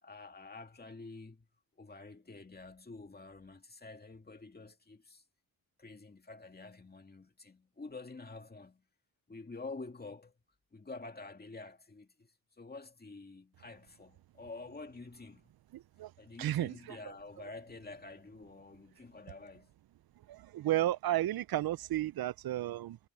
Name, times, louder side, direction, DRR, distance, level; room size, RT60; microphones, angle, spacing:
voice 1, 0.0-1.5 1.8-5.2 5.8-8.8 9.3-10.3 10.7-15.5 16.2-19.7, left 3 dB, 25° left, 2.3 m, -48 dB
voice 2, 15.7-16.1 16.4-17.0 20.3-23.0, right 14 dB, 85° right, 0.5 m, -33 dB
wide cardioid pair, 115°, 35 cm